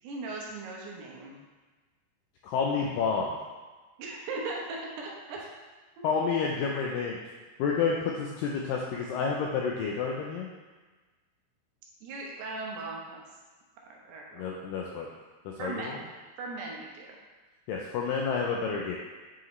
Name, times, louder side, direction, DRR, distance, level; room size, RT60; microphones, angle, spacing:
voice 1, 0.0-1.4 4.0-5.4 12.0-13.2 13.9-14.6 15.6-16.1 16.4-17.2, right 3 dB, 80° right, -2 dB, 3.1 m, -38 dB
voice 2, 2.4-3.4 6.0-7.2 7.6-10.5 14.4-15.1 15.5-16.0 17.7-19.0, left 5 dB, 90° left, -1 dB, 2.0 m, -29 dB
9.0 x 4.9 x 3.1 m, 1.3 s
omnidirectional pair, 4.6 m